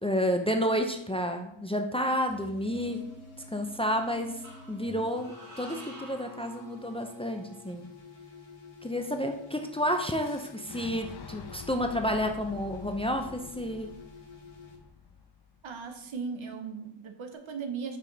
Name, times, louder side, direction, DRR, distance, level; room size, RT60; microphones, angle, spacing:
voice 1, 0.0-3.0 3.5-4.4 4.7-7.9 8.8-13.9, equal, 10° left, 4 dB, 0.5 m, -30 dB
sound 1, 2.3-14.8, left 4 dB, 70° left, 1.4 m, -49 dB
sound 2, 2.7-3.5 4.4-7.3, right 1 dB, 35° right, 1.9 m, -50 dB
Fire / Explosion, 10.2-16.1, left 6 dB, 50° left, 0.7 m, -47 dB
voice 2, 15.6-18.0, right 5 dB, 70° right, 6 dB, 0.9 m, -37 dB
5.4 x 5.0 x 3.9 m, 0.77 s
wide cardioid pair, 100°, 49 cm